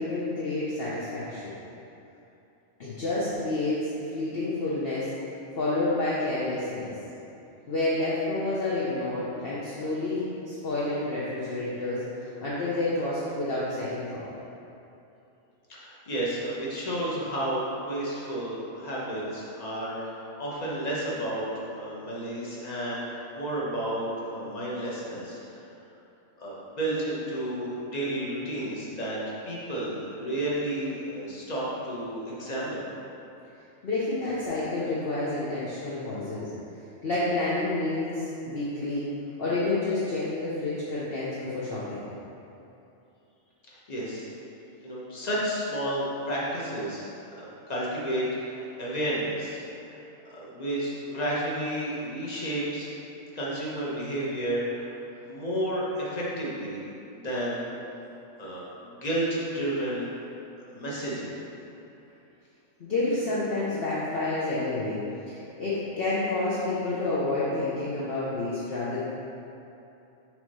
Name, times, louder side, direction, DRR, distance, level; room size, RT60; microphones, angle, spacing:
voice 1, 0.0-1.4 2.8-5.1 5.6-6.9 7.7-14.3 33.8-36.5 37.0-39.1 39.4-42.0 62.8-65.0 65.3-69.0, left 2 dB, 50° left, -9 dB, 1.0 m, -29 dB
voice 2, 15.7-25.6 26.4-29.2 29.4-32.8 43.7-44.3 44.8-49.6 49.9-50.0 50.3-52.9 53.3-55.0 55.2-56.8 57.1-57.7 58.4-60.1 60.7-61.4, right 1 dB, 35° left, -6 dB, 1.2 m, -31 dB
6.0 x 3.6 x 5.4 m, 2.9 s
omnidirectional pair, 1.3 m